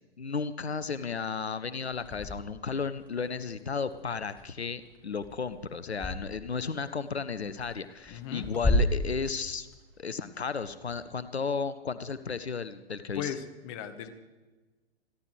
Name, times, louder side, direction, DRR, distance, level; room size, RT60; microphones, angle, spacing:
voice 1, 0.2-9.7 10.0-13.3, left 5 dB, 75° left, 13 dB, 0.8 m, -34 dB
sound 1, 1.7-6.2 6.6-11.2, left 1 dB, 5° left, 3.4 m, -33 dB
voice 2, 8.1-8.5 13.1-14.1, left 9 dB, 30° left, 9 dB, 1.2 m, -37 dB
29.0 x 11.5 x 3.3 m, 1.2 s
figure-of-eight pair, 115°, 32 cm